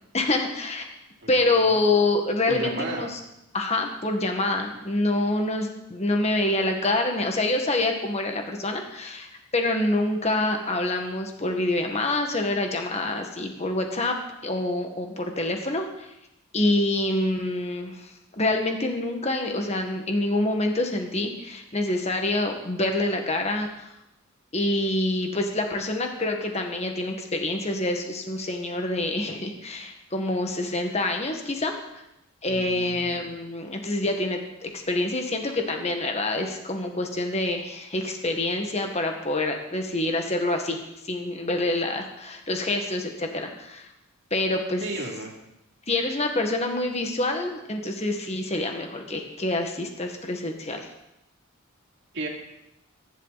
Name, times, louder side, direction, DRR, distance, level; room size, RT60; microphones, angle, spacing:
voice 1, 0.1-0.9 1.3-3.2 3.5-14.2 14.4-16.1 16.5-23.9 24.5-31.7 32.4-40.8 41.0-43.9 44.3-44.8 45.9-50.9, left 2 dB, 30° left, 3 dB, 1.6 m, -26 dB
voice 2, 1.2-1.6 2.5-3.1 4.7-4.8 32.5-33.3 44.8-45.3 52.1-52.3, right 2 dB, 55° right, 0 dB, 2.8 m, -34 dB
22.5 x 11.5 x 4.1 m, 0.86 s
head